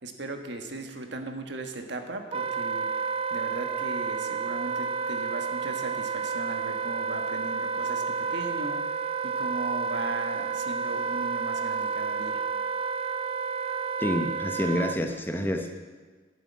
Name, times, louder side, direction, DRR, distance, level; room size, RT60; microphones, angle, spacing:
voice 1, 0.0-12.4, right 2 dB, 55° right, 5 dB, 1.5 m, -38 dB
Wind instrument woodwind instrument, 2.3-15.0, right 5 dB, 30° right, 0.3 m, -30 dB
voice 2, 14.0-15.8, left 1 dB, 10° left, 4 dB, 0.8 m, -28 dB
12.0 x 7.7 x 9.5 m, 1.4 s
head